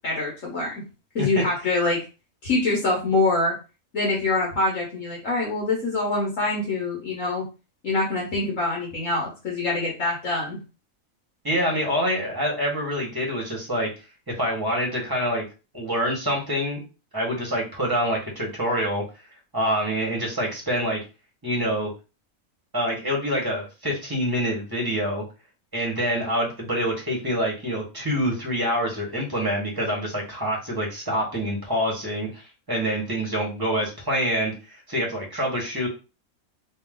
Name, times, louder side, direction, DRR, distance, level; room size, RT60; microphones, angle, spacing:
voice 1, 0.0-0.8 1.1-2.0 2.4-3.5 3.9-7.4 7.8-10.6, left 2 dB, 60° left, -3 dB, 1.6 m, -25 dB
voice 2, 11.4-13.9 14.4-15.4 15.7-16.8 17.1-19.0 19.5-21.0 21.4-21.9 22.7-25.2 25.7-32.4 32.7-35.9, equal, 15° right, -2 dB, 1.6 m, -26 dB
3.2 x 3.2 x 3.8 m, 0.30 s
omnidirectional pair, 1.5 m